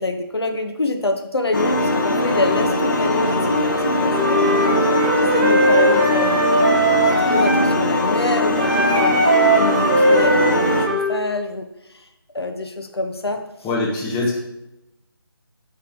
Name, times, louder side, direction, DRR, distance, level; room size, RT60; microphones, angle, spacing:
voice 1, 0.0-6.5 7.2-9.2 9.5-11.7 12.3-13.4, left 2 dB, 85° left, 4 dB, 1.1 m, -26 dB
sound 1, 1.5-10.9, left 2 dB, 50° left, 1.3 m, -20 dB
Wind instrument woodwind instrument, 4.1-7.7 8.6-11.2, right 2 dB, 25° right, 1.0 m, -19 dB
voice 2, 13.6-14.4, left 2 dB, 10° left, -7 dB, 1.5 m, -22 dB
9.9 x 3.6 x 4.7 m, 0.90 s
figure-of-eight pair, 160°, 13 cm